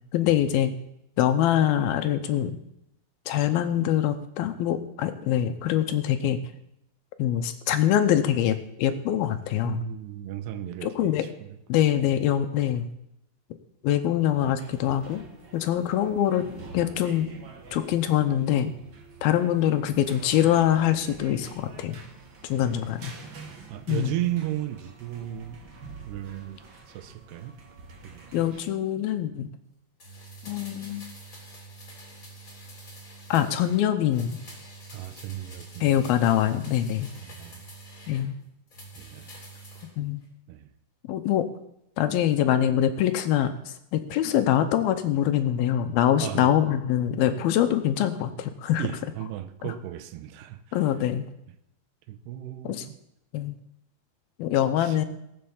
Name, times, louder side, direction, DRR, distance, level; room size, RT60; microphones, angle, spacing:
voice 1, 0.1-0.7 1.2-2.6 3.3-6.4 7.2-9.8 10.8-11.3 11.7-12.9 13.8-15.2 15.5-16.4 16.7-17.3 17.7-18.7 19.2-22.0 22.4-23.1 23.9-24.2 28.3-29.5 30.4-31.1 33.3-34.4 35.8-37.1 38.1-38.3 40.0-40.2 41.1-41.4 42.0-48.9 49.6-49.7 50.7-51.3 52.6-52.9 53.3-53.6 54.4-55.1, left 11 dB, 80° left, 2.5 m, -24 dB
voice 2, 9.6-11.8 14.1-14.6 22.6-22.8 23.7-25.6 26.0-27.6 28.0-28.5 34.9-35.9 37.2-37.7 39.0-39.3 40.5-40.7 46.2-46.5 48.8-50.8 52.1-53.0 54.8-55.1, right 12 dB, 85° right, 3.0 m, -35 dB
sound 1, 14.6-28.6, right 4 dB, 50° right, 1.5 m, -46 dB
sound 2, 30.0-33.8 34.1-38.3 38.7-39.9 40.2-40.3, right 2 dB, 20° left, 3.6 m, -46 dB
18.0 x 7.8 x 7.2 m
omnidirectional pair, 4.7 m